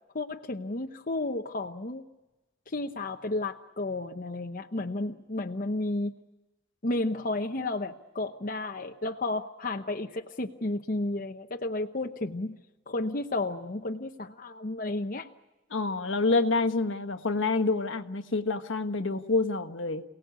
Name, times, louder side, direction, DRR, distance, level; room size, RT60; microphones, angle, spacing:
voice 1, 0.1-2.0 2.7-6.2 6.8-12.6 12.9-15.3, left 2 dB, 45° left, 4 dB, 0.9 m, -32 dB
voice 2, 15.7-20.0, left 3 dB, 70° left, 8 dB, 1.4 m, -27 dB
28.5 x 18.0 x 8.2 m, 1.1 s
head